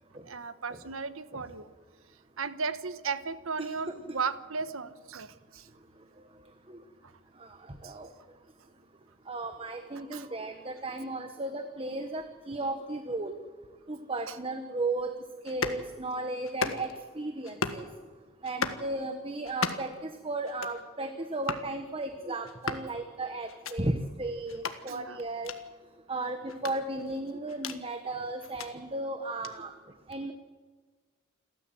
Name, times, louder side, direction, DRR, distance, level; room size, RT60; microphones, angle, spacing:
voice 1, 0.2-1.7 2.4-5.7 7.0-7.1 7.8-8.0 10.1-10.3 14.3-14.4 24.9-25.2, right 5 dB, 70° right, 13 dB, 1.2 m, -35 dB
voice 2, 7.4-8.1 9.3-13.4 13.9-15.1 15.4-17.9 18.4-25.5 26.1-29.7 30.1-30.3, right 2 dB, 25° right, 7 dB, 1.2 m, -35 dB
sound 1, 15.5-15.8 16.4-17.0 17.4-17.9 18.4-18.8 19.4-20.0 20.4-20.8 21.4-21.7 22.4-22.9 23.5-23.8 24.5-24.8 25.4-25.6 26.5-27.8 28.4-28.7 29.4-29.5, left 4 dB, 75° left, 1.5 m, -35 dB
29.0 x 13.0 x 7.8 m, 1.4 s
head